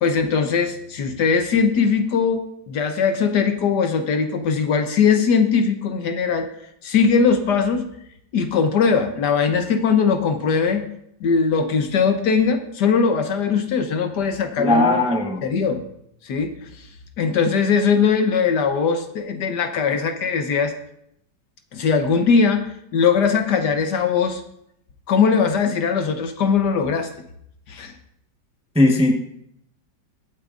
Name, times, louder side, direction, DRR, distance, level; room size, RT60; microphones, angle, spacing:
voice 1, 0.0-6.5 6.8-7.9 8.3-10.9 11.2-15.0 15.4-15.8 16.2-16.5 17.2-20.7 21.7-24.4 25.1-27.1 27.7-27.9, left 5 dB, 65° left, 7 dB, 1.4 m, -20 dB
voice 2, 14.6-15.4 28.7-29.1, left 2 dB, 5° right, 1 dB, 0.7 m, -17 dB
22.5 x 8.7 x 2.5 m, 0.74 s
omnidirectional pair, 2.1 m